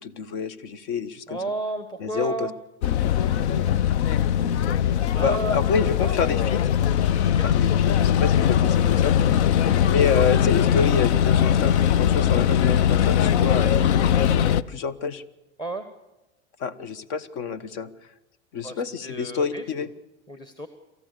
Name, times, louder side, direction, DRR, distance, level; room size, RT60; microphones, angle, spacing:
voice 1, 0.0-1.4 2.0-2.5 5.2-6.7 7.4-9.2 9.9-14.0 14.7-15.2 16.6-17.9 18.5-19.9, left 5 dB, 55° left, 15 dB, 1.4 m, -27 dB
voice 2, 1.3-2.5 3.2-3.3 5.1-5.6 6.0-6.2 7.2-7.5 15.6-15.9 18.6-19.6 20.3-20.7, right 2 dB, 10° left, 9 dB, 1.3 m, -32 dB
sound 1, 2.8-14.6, left 9 dB, 75° left, 0.7 m, -20 dB
27.5 x 14.0 x 6.8 m, 0.99 s
hypercardioid pair, 100°, 34 cm